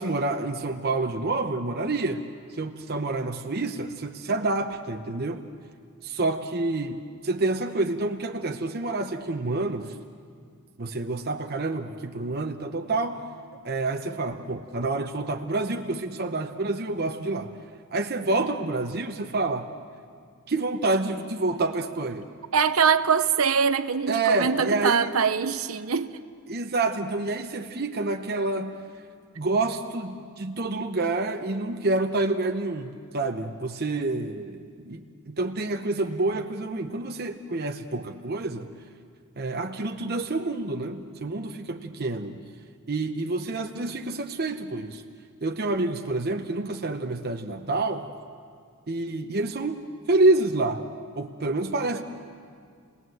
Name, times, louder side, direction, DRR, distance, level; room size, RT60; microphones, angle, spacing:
voice 1, 0.0-2.2 2.5-5.4 6.0-9.9 10.8-13.2 13.6-17.5 17.9-19.7 20.5-22.3 24.1-25.1 26.5-28.8 29.4-38.7 39.4-42.4 42.9-45.0 45.4-48.1 48.9-50.8 51.2-52.0, right 2 dB, 45° right, 0.9 m, -28 dB
voice 2, 22.5-26.1, right 6 dB, 75° right, 0.8 m, -23 dB
30.0 x 19.5 x 7.8 m
head